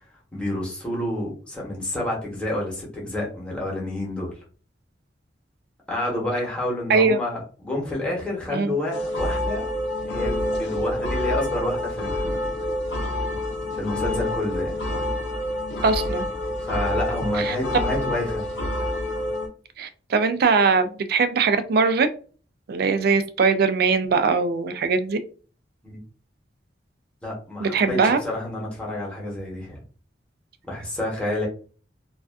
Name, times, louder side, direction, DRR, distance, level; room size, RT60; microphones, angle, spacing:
voice 1, 0.3-4.3 5.9-9.7 10.0-12.4 13.7-14.7 16.6-18.5 25.8-26.0 27.2-29.8 30.7-31.5, left 1 dB, 5° left, -4 dB, 0.9 m, -29 dB
sound 1, 8.9-19.5, left 1 dB, 80° left, 0.7 m, -27 dB
voice 2, 15.8-16.2 17.4-17.6 19.8-22.1 22.7-25.2 27.6-28.2, right 4 dB, 55° right, 9 dB, 0.3 m, -21 dB
2.5 x 2.3 x 2.3 m, 0.39 s
head